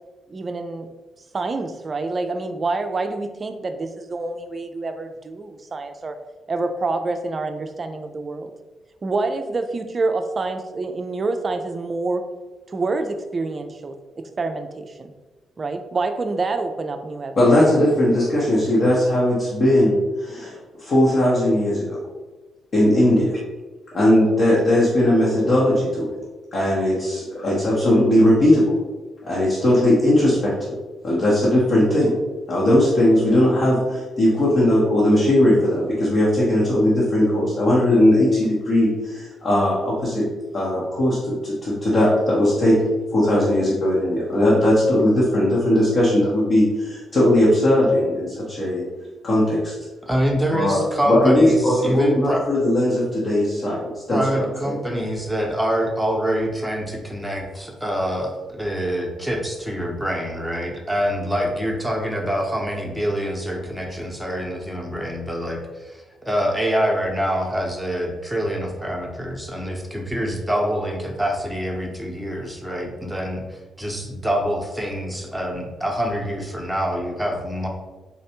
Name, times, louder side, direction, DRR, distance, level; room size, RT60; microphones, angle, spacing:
voice 1, 0.3-0.9 1.3-6.2 6.5-8.5 9.0-12.3 12.7-15.1 15.6-17.4, right 3 dB, 40° right, 7 dB, 0.4 m, -27 dB
voice 2, 17.4-20.5 20.8-22.0 22.7-23.4 23.9-26.2 26.5-28.7 29.2-30.7 31.0-32.1 32.5-40.3 40.5-48.8 49.2-49.7 50.5-50.8 51.1-54.7, left 1 dB, 50° left, -7 dB, 1.0 m, -18 dB
voice 3, 50.0-52.4 54.1-77.7, equal, ahead, -1 dB, 0.9 m, -25 dB
4.1 x 3.1 x 2.9 m, 1.2 s
figure-of-eight pair, 40°, 0 cm